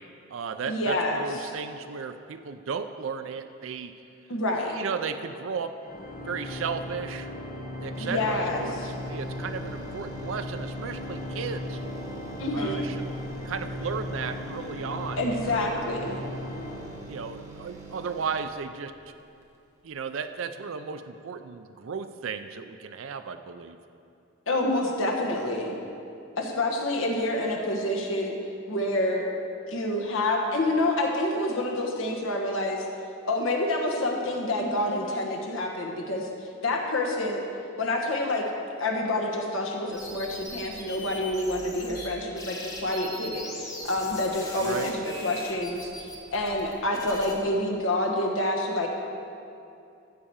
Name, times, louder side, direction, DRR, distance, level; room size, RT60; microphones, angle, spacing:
voice 1, 0.0-4.0 4.7-5.8 6.2-7.3 7.8-11.8 12.5-13.1 13.4-15.2 15.5-15.7 16.0-16.2 17.1-19.1 19.8-23.8 44.6-44.9, right 6 dB, 75° right, 8 dB, 0.4 m, -35 dB
voice 2, 0.7-1.5 4.3-4.7 8.0-8.6 12.4-12.9 15.2-16.2 24.5-25.8 26.4-28.3 28.7-29.3 29.7-32.9 33.2-37.4 37.8-38.5 38.8-48.9, left 1 dB, 75° left, 0 dB, 1.4 m, -28 dB
Organ, 5.8-17.6, left 1 dB, 40° left, 1.3 m, -37 dB
sound 1, 7.9-19.6 19.9-20.0, right 3 dB, 15° right, 1.2 m, -46 dB
sound 2, 39.9-42.1 42.4-47.3, left 1 dB, 15° left, 1.2 m, -40 dB
14.0 x 4.9 x 7.0 m, 2.6 s
head